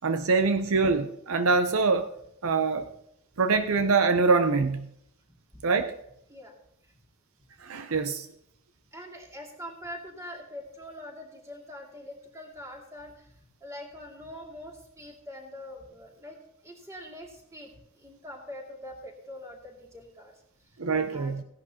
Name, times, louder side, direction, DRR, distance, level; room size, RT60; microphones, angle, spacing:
voice 1, 0.0-2.1 2.4-2.9 3.4-4.9 5.6-6.0 7.6-8.3 20.8-21.4, right 4 dB, 70° right, 8 dB, 0.7 m, -24 dB
voice 2, 8.9-13.3 13.6-20.3 21.1-21.3, left 1 dB, 15° right, 0 dB, 2.4 m, -44 dB
16.5 x 11.0 x 2.9 m, 0.73 s
head